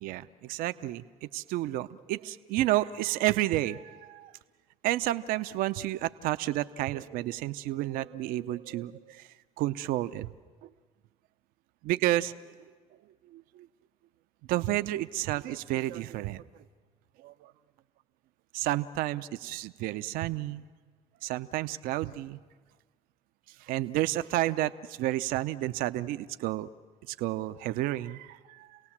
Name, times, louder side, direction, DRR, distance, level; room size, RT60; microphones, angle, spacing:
voice 1, 0.0-4.3 4.8-9.3 9.6-10.3 11.8-12.5 13.3-13.7 14.5-16.4 17.2-17.5 18.5-20.6 21.2-22.4 23.6-26.7 27.1-28.8, right 15 dB, 70° right, 12 dB, 0.6 m, -31 dB
28.0 x 18.0 x 7.3 m, 1.5 s
supercardioid pair, 70°, 15 cm